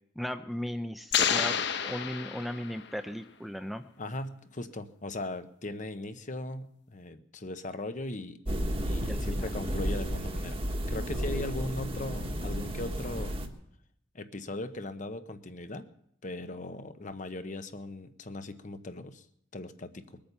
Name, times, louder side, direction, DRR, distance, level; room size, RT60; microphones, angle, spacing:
voice 1, 0.2-3.8 9.1-9.5, equal, ahead, 8 dB, 0.6 m, -36 dB
sound 1, 1.1-3.0, left 7 dB, 60° left, 1.1 m, -29 dB
voice 2, 4.0-8.4 8.8-10.6 10.9-13.4 14.1-15.9 16.2-19.2 19.5-20.2, left 2 dB, 40° left, 10 dB, 1.0 m, -39 dB
sound 2, 8.4-13.5, equal, 30° right, 1.5 m, -32 dB
22.0 x 8.8 x 6.9 m, 0.72 s
head